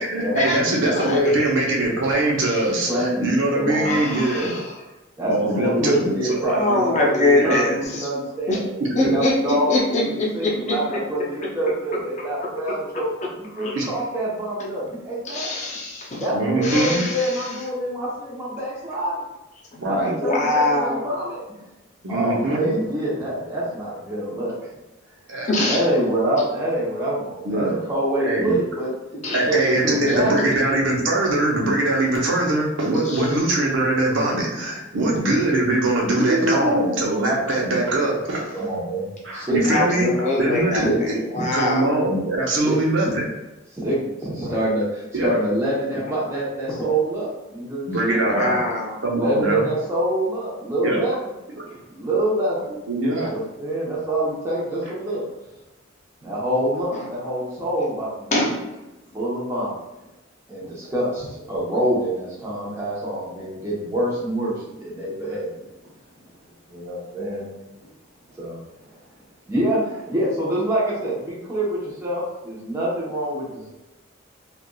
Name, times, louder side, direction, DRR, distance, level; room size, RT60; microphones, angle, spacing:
voice 1, 0.1-4.6 5.3-6.3 7.4-7.6 9.0-9.1 13.7-13.8 16.3-17.0 19.7-20.2 22.0-22.8 25.3-25.5 27.4-27.8 28.2-28.5 29.3-38.7 39.2-40.1 40.4-41.2 41.5-43.2 45.1-45.3 47.9-48.6 49.0-49.6 50.8-51.0 51.7-51.8 52.9-53.3, right 2 dB, 75° right, -2 dB, 0.8 m, -22 dB
voice 2, 0.9-1.5 2.4-2.6 3.8-4.7 6.5-8.1 8.5-8.6 8.9-11.0 11.4-11.5 13.6-13.9 15.2-16.2 16.6-17.5 20.2-21.1 25.5-25.8 29.2-29.4 30.0-30.2 33.0-33.3 37.5-37.6 39.6-41.9 48.2-49.0 56.9-57.1 58.3-58.8, left 2 dB, 40° left, -3 dB, 0.6 m, -24 dB
voice 3, 2.9-3.2 3.5-4.0 5.2-8.7 9.0-13.1 13.4-15.5 16.2-19.2 19.8-21.4 22.1-24.7 25.6-28.9 29.5-30.5 35.0-35.2 36.1-37.0 38.5-40.1 40.8-41.4 42.6-42.8 43.8-48.3 49.1-51.2 51.9-52.6 53.2-55.2 56.2-58.4 59.1-59.7 60.5-65.5 66.7-67.4 68.4-68.6 69.5-73.7, right 1 dB, 15° right, -8 dB, 0.9 m, -26 dB
3.3 x 2.5 x 2.3 m, 0.98 s
head